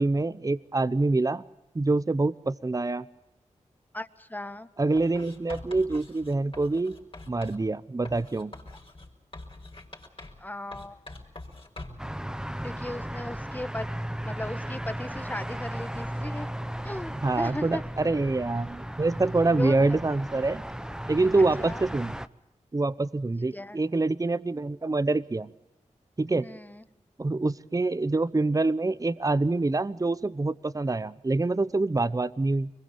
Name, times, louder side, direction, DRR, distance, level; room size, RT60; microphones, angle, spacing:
voice 1, 0.0-1.4 1.7-3.0 4.8-7.0 7.3-8.5 17.2-20.6 21.1-22.1 22.7-25.5 26.2-26.5 27.2-32.7, right 2 dB, 25° right, 15 dB, 0.8 m, -26 dB
voice 2, 3.9-4.7 10.4-11.0 12.6-13.9 14.2-16.5 16.8-17.8 19.5-20.0 21.6-21.8 23.5-23.8 26.3-26.8, left 1 dB, 15° left, 12 dB, 1.5 m, -37 dB
Writing, 5.0-7.6 8.0-10.5 10.7-12.1, left 2 dB, 45° left, 5.5 m, -45 dB
sound 1, 12.0-22.3, equal, 5° right, 1.0 m, -36 dB
25.0 x 22.0 x 6.9 m, 0.90 s
cardioid pair, 45°, 13 cm